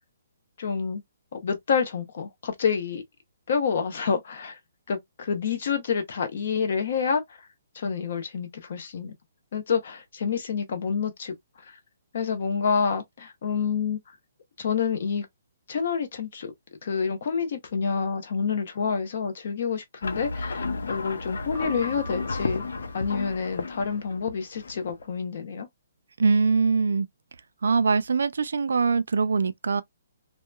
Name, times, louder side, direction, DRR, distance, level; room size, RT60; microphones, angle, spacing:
voice 1, 0.6-1.0 1.3-3.0 3.5-4.6 4.9-7.4 7.7-9.1 9.5-11.8 12.1-14.0 14.6-15.3 15.7-16.5 16.8-22.6 22.9-25.7, left 6 dB, 45° left, 0.7 m, -28 dB
sound 1, 20.0-25.2, left 3 dB, 85° left, 0.6 m, -33 dB
Piano, 21.6-23.7, left 2 dB, 20° right, 0.7 m, -43 dB
voice 2, 26.2-27.1 27.6-29.8, right 4 dB, 85° right, 0.4 m, -22 dB
2.8 x 2.1 x 2.2 m
hypercardioid pair, 175°, 0 cm